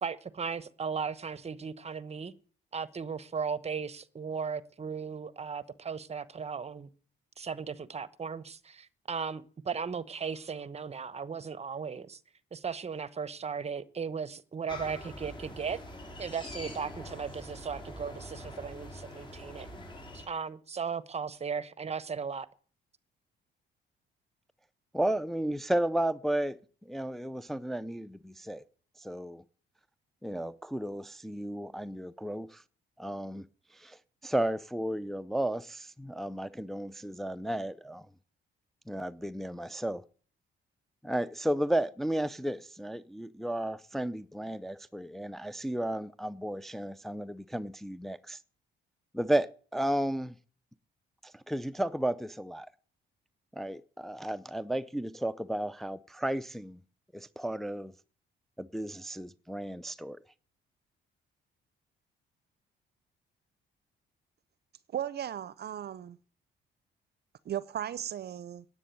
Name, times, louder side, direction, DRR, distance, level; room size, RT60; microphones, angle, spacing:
voice 1, 0.0-2.3 2.7-6.9 7.4-12.2 12.5-15.8 16.2-19.7 20.1-22.5, right 6 dB, 30° right, 0.9 m, -36 dB
sound 1, 14.7-20.3, left 1 dB, 25° left, 4.3 m, -44 dB
voice 2, 24.9-26.6 26.9-28.6 29.0-29.4 30.2-32.6 33.0-33.5 33.7-38.1 38.9-40.0 41.0-48.4 49.1-50.3 51.2-52.7 53.5-56.8 57.1-57.9 58.6-60.2, right 1 dB, ahead, 0.5 m, -33 dB
voice 3, 64.9-66.2 67.5-68.6, right 10 dB, 55° right, 0.6 m, -36 dB
9.9 x 8.3 x 9.2 m
cardioid pair, 90°, 20 cm